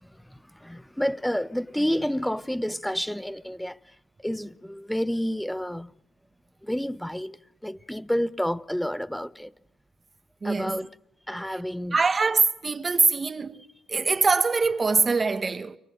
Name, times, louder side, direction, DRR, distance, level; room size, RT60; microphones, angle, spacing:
voice 1, 0.0-3.9 4.2-5.9 6.6-9.5 10.4-10.9 11.3-12.0, equal, 5° left, 1.0 m, -30 dB
voice 2, 10.4-10.8 11.9-13.6 13.9-15.8, right 4 dB, 30° right, 1.6 m, -23 dB
29.5 x 25.0 x 6.7 m
cardioid pair, 90°, 0 cm